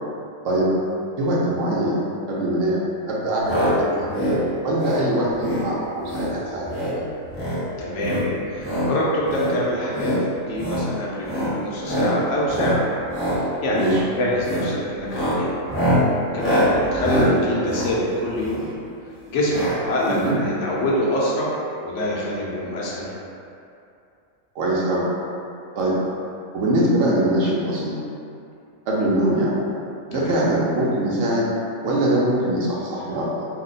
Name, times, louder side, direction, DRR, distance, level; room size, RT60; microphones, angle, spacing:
voice 1, 1.2-2.0 2.3-4.1 4.6-7.1 13.7-14.0 20.1-20.4 24.5-25.1 25.7-26.0 26.5-28.0 28.9-29.5 30.1-31.5 31.8-33.4, right 1 dB, 70° right, -6 dB, 1.0 m, -22 dB
sound 1, 3.4-3.7 4.0-4.4 4.7-5.0 5.4-5.7 6.0-6.3 6.6-7.0 7.3-7.6 8.0-8.9 9.3-9.5 9.9-10.2 10.5-10.9 11.2-11.5 11.8-12.1 12.5-12.8 13.1-13.4 13.7-14.0 14.4-14.7 15.0-18.7 19.5-19.8 20.0-20.1 20.3-20.4, equal, 10° left, 0.7 m, -24 dB
voice 2, 7.8-8.2 8.5-12.8 13.3-13.9 14.2-15.5 16.3-18.7 19.3-21.5 21.8-23.1 30.1-30.3, equal, 65° left, -5 dB, 0.9 m, -25 dB
2.8 x 2.2 x 3.9 m, 2.6 s
omnidirectional pair, 1.4 m